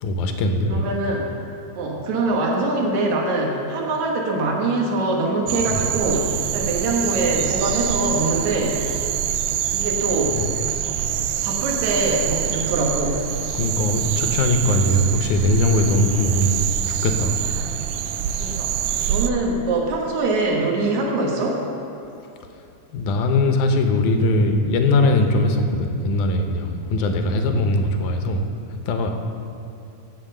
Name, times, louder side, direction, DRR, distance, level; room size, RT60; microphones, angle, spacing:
voice 1, 0.0-0.9 10.4-10.5 13.5-17.4 22.9-28.5 28.9-29.1, left 1 dB, 75° left, 5 dB, 2.2 m, -20 dB
voice 2, 0.7-1.3 1.8-8.8 9.7-10.4 11.4-13.3 18.4-18.7 19.1-21.6, right 2 dB, 65° right, -1 dB, 2.6 m, -23 dB
sound 1, 5.5-19.3, right 10 dB, 80° right, 2.0 m, -25 dB
16.0 x 5.6 x 6.7 m, 2.8 s
omnidirectional pair, 3.7 m